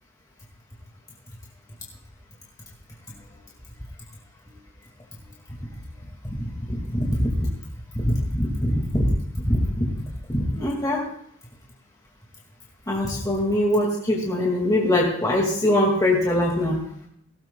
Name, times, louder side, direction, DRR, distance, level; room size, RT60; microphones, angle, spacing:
voice 1, 6.4-7.5 8.0-9.1 9.3-9.9 10.3-11.0 12.9-16.8, left 1 dB, 20° left, -2 dB, 2.0 m, -23 dB
18.0 x 17.0 x 2.3 m, 0.69 s
head